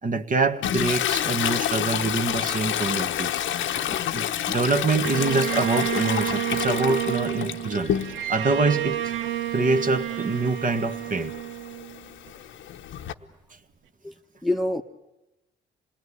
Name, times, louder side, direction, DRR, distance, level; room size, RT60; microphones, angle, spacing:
voice 1, 0.0-3.3 4.1-7.9 8.3-9.2 9.5-11.3, right 3 dB, 40° right, 6 dB, 1.8 m, -25 dB
Toilet flush, 0.6-8.4 8.8-13.1, left 10 dB, 75° left, 1.0 m, -29 dB
Bowed string instrument, 5.0-12.3, right 13 dB, 85° right, 0.9 m, -30 dB
voice 2, 7.2-7.9 13.2-13.3 14.0-14.1 14.4-14.8, left 1 dB, ahead, 4 dB, 1.3 m, -28 dB
27.0 x 20.0 x 10.0 m, 0.98 s
cardioid pair, 90°, 20 cm